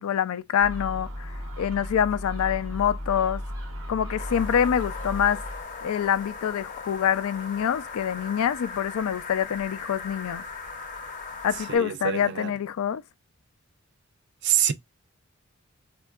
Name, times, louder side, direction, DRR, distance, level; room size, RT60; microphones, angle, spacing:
voice 1, 0.0-3.4 3.9-5.4 5.8-10.4 11.4-13.0, left 8 dB, 80° left, 0.3 m, -26 dB
Gull seagull, 0.6-5.6, equal, 75° right, 0.9 m, -35 dB
sound 1, 4.2-11.8, left 4 dB, 35° left, 0.6 m, -38 dB
voice 2, 11.6-12.5 14.4-14.7, right 9 dB, 50° right, 0.3 m, -26 dB
4.3 x 2.2 x 2.3 m
head